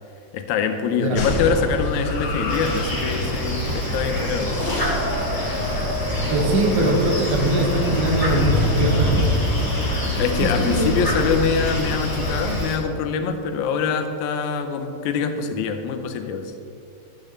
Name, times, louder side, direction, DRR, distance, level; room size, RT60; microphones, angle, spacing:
voice 1, 0.3-4.6 10.2-16.5, left 6 dB, 80° left, 7 dB, 1.7 m, -24 dB
sound 1, 1.2-12.6, left 1 dB, 65° left, 2.4 m, -26 dB
sound 2, 2.5-12.8, left 1 dB, 10° left, 0.9 m, -30 dB
Crow, 3.7-10.1, equal, 45° right, 1.7 m, -28 dB
voice 2, 6.3-9.3 10.4-10.9, right 2 dB, 85° right, 0 dB, 3.5 m, -22 dB
15.0 x 12.0 x 3.3 m, 2.7 s
omnidirectional pair, 4.3 m